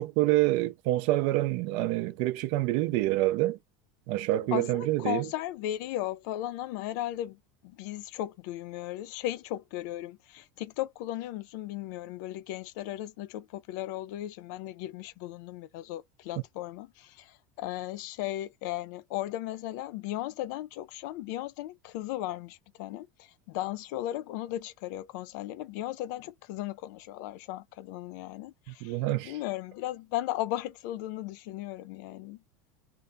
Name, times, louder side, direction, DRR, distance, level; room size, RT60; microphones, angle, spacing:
voice 1, 0.0-3.6 4.1-5.3 28.8-29.3, right 17 dB, 60° right, 0.5 m, -27 dB
voice 2, 4.5-32.4, left 14 dB, 70° left, 0.4 m, -36 dB
2.7 x 2.1 x 2.3 m
supercardioid pair, 125°, 10 cm